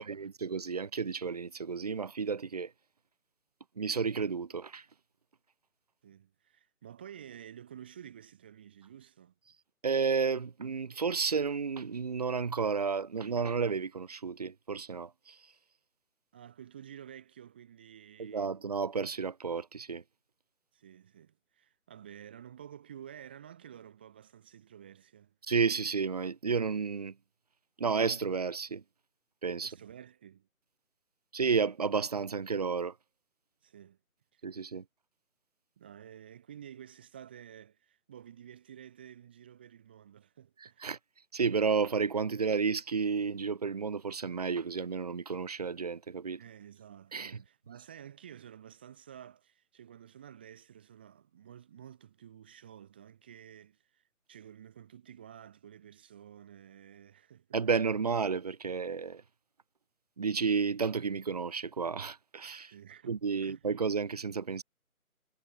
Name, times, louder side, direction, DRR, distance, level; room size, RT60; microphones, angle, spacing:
voice 1, 0.0-2.7 3.8-4.8 9.8-15.3 18.2-20.0 25.5-27.1 27.8-28.8 29.4-29.7 31.3-32.9 34.4-34.8 40.8-41.0 41.3-46.4 47.1-47.3 57.5-59.2 60.2-62.7 63.1-64.6, right 5 dB, 25° right, 1.3 m, -31 dB
voice 2, 6.0-9.3 16.3-18.5 20.7-25.3 29.6-30.5 33.6-34.0 34.3-34.6 35.8-40.9 46.4-57.6 62.7-63.6, right 9 dB, 5° right, 1.1 m, -51 dB
figure-of-eight pair, 150°, 43 cm